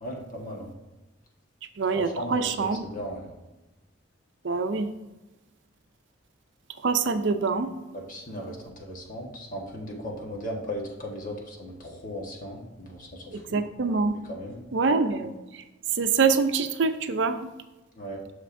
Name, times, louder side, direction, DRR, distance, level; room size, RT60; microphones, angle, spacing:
voice 1, 0.0-0.7 1.9-3.3 7.9-13.6 14.3-14.6 18.0-18.2, equal, 45° left, -1 dB, 1.4 m, -37 dB
voice 2, 1.8-2.9 4.4-4.9 6.8-7.7 13.3-14.1 14.7-15.6 16.0-17.4, right 4 dB, 65° right, 8 dB, 0.5 m, -25 dB
9.9 x 6.6 x 2.6 m, 1.1 s
head